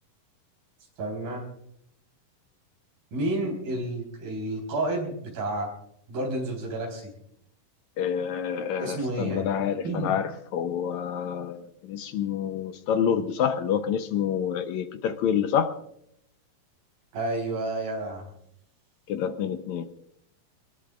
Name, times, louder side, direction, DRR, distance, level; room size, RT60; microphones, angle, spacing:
voice 1, 1.0-1.5 3.1-5.7 6.1-7.0 8.8-9.5 9.8-10.2 17.1-18.2, right 2 dB, 75° right, 5.8 m, -30 dB
voice 2, 8.0-15.7 19.1-19.9, left 8 dB, 70° left, 1.8 m, -28 dB
23.0 x 20.0 x 2.5 m
omnidirectional pair, 4.0 m